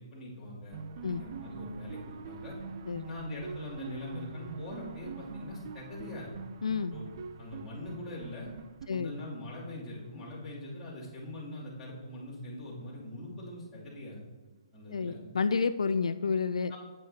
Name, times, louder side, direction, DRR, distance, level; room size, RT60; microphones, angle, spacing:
voice 1, 0.1-2.6 3.0-6.3 6.9-7.0 7.4-8.5 8.9-14.2 14.7-15.2 16.7-16.8, left 1 dB, 10° left, -11 dB, 2.7 m, -42 dB
sound 1, 0.7-9.5, right 5 dB, 40° right, 0.5 m, -44 dB
voice 2, 6.6-6.9 8.9-9.1 14.9-16.7, left 5 dB, 85° left, 12 dB, 0.3 m, -30 dB
9.0 x 8.5 x 2.8 m, 1.3 s
hypercardioid pair, 160°, 3 cm